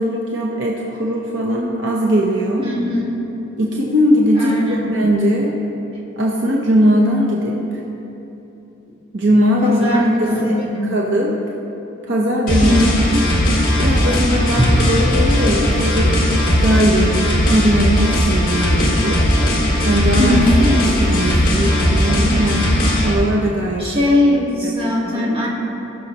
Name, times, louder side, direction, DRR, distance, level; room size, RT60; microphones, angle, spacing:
voice 1, 0.0-2.7 3.6-5.6 6.2-7.8 9.1-11.6 12.1-12.8 13.8-19.2 19.8-20.4 20.7-22.6 23.0-24.7 25.0-25.4, equal, 60° right, -2 dB, 0.9 m, -19 dB
voice 2, 2.6-3.2 4.4-4.9 9.6-11.0 12.6-13.3 14.7-14.8 20.2-20.7 23.8-25.5, left 1 dB, 25° right, -5 dB, 1.8 m, -19 dB
sound 1, 12.5-23.1, left 1 dB, 40° left, 1.9 m, -17 dB
19.0 x 6.5 x 3.0 m, 3.0 s
head